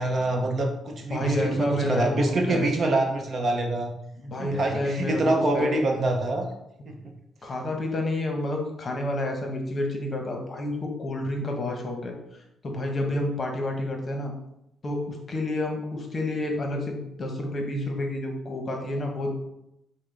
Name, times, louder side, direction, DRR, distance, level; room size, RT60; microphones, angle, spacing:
voice 1, 0.0-3.9 4.4-6.5 6.9-7.1, right 2 dB, 45° right, 3 dB, 0.7 m, -25 dB
voice 2, 1.1-2.7 4.2-5.8 7.4-14.3 14.8-19.3, left 1 dB, 35° left, 2 dB, 1.0 m, -29 dB
5.8 x 2.1 x 3.3 m, 0.81 s
cardioid pair, 90°, 0 cm